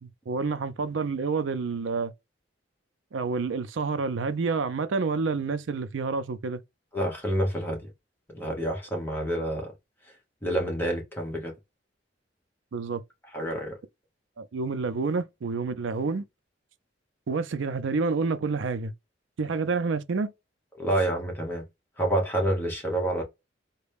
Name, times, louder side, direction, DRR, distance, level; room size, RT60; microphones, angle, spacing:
voice 1, 0.0-2.1 3.1-6.6 12.7-13.0 14.4-16.2 17.3-18.9 19.4-20.3, right 4 dB, 90° right, 0.5 m, -28 dB
voice 2, 6.9-7.9 8.3-9.7 10.4-11.5 13.3-13.8 20.8-21.6 22.0-23.2, right 1 dB, 10° left, 1.2 m, -28 dB
4.0 x 2.2 x 3.4 m
head